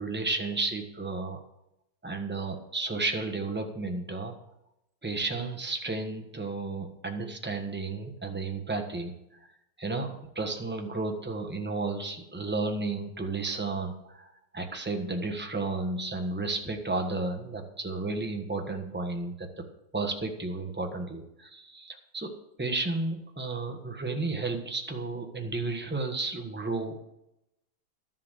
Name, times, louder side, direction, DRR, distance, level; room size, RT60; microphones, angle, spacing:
voice 1, 0.0-1.4 2.0-4.4 5.0-9.2 9.8-19.7 19.9-27.0, right 3 dB, 5° right, 3 dB, 0.9 m, -33 dB
12.5 x 7.5 x 6.5 m, 0.84 s
omnidirectional pair, 2.3 m